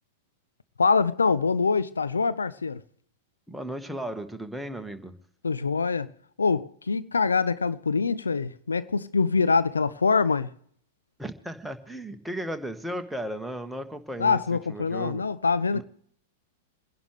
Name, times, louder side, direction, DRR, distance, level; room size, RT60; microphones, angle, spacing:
voice 1, 0.8-2.8 5.4-6.1 6.4-10.5 14.2-15.8, left 4 dB, 80° left, 0.6 m, -24 dB
voice 2, 3.5-5.1 11.2-14.4 14.7-15.2 15.7-15.8, right 1 dB, ahead, 1.4 m, -35 dB
28.0 x 11.0 x 3.3 m
figure-of-eight pair, 100°, 0 cm